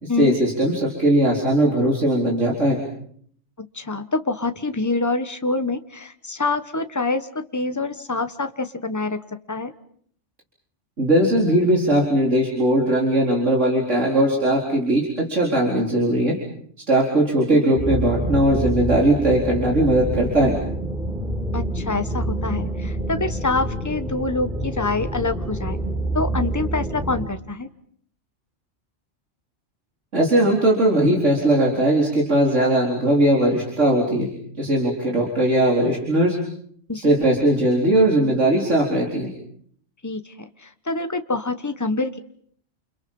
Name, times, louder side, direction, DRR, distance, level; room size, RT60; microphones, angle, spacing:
voice 1, 0.0-2.8 11.0-16.4 16.9-20.5 30.1-34.3 34.6-36.4 36.9-39.3, right 1 dB, 80° right, -2 dB, 4.5 m, -19 dB
voice 2, 3.6-9.2 9.5-9.7 17.5-17.8 21.5-25.8 26.1-27.7 36.9-37.1 40.0-42.2, left 3 dB, 15° left, 9 dB, 1.3 m, -26 dB
sound 1, 17.8-27.3, right 1 dB, ahead, 4.6 m, -27 dB
29.5 x 29.0 x 5.5 m, 0.62 s
omnidirectional pair, 1.2 m